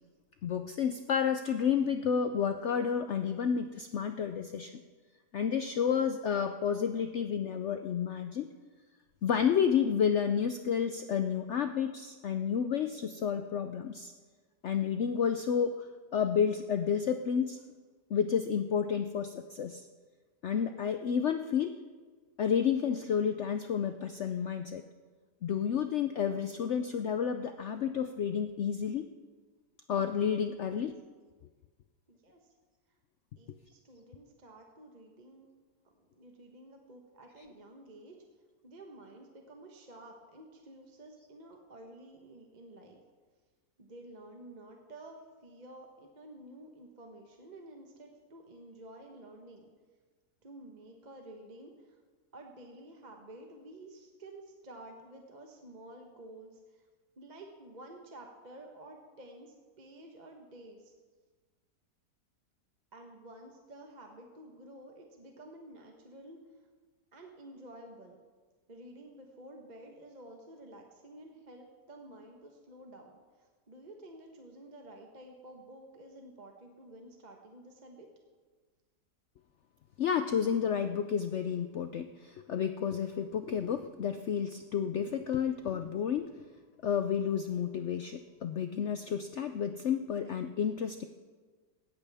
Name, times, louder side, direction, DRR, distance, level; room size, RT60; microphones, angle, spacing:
voice 1, 0.4-4.8 5.3-8.5 9.2-14.1 14.6-15.9 16.1-17.6 18.1-19.9 20.4-21.8 22.4-24.8 25.4-29.0 29.9-30.9 80.0-86.4 86.8-91.1, left 7 dB, 70° left, 8 dB, 0.6 m, -31 dB
voice 2, 30.5-30.8 32.1-32.4 33.4-35.5 36.0-38.2 38.6-43.0 43.8-49.7 50.4-51.9 52.3-56.9 57.2-60.9 62.9-66.4 67.1-68.2 68.7-78.1, right 1 dB, 30° right, 2 dB, 1.1 m, -51 dB
18.0 x 14.0 x 3.5 m, 1.4 s
omnidirectional pair, 1.8 m